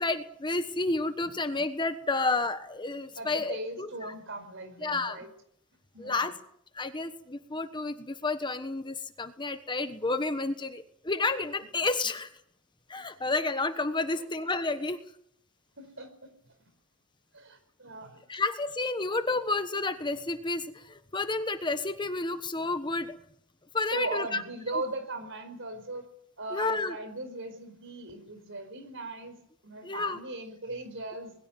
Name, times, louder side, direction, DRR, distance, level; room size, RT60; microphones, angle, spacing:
voice 1, 0.0-4.1 4.8-5.2 6.0-6.3 6.7-12.3 12.9-15.0 18.3-23.2 23.7-24.4 26.5-26.9 29.8-30.2, left 3 dB, 20° left, 9 dB, 1.2 m, -30 dB
voice 2, 3.1-5.3 5.9-6.3 14.1-14.2 15.8-16.5 17.3-18.2 23.9-26.1 26.4-31.3, right 2 dB, 60° right, 9 dB, 5.0 m, -38 dB
21.5 x 16.5 x 9.5 m, 0.69 s
head